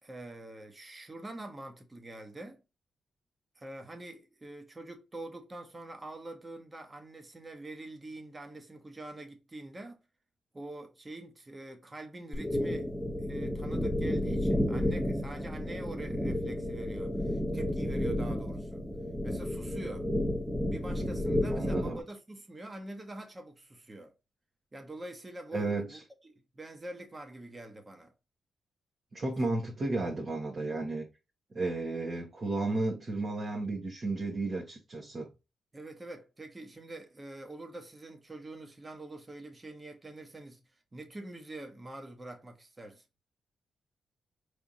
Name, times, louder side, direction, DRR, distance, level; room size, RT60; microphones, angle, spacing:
voice 1, 0.0-2.6 3.6-10.0 10.5-12.9 13.2-18.8 19.2-20.1 20.7-24.1 24.7-28.1 35.7-43.0, right 2 dB, 25° right, 1.2 m, -45 dB
sound 1, 12.3-22.0, left 1 dB, 5° right, 0.9 m, -31 dB
voice 2, 21.5-22.0 25.5-26.0 29.1-31.0 31.5-35.3, right 2 dB, 40° right, 1.4 m, -33 dB
5.0 x 3.4 x 2.8 m
cardioid pair, 75°, 0 cm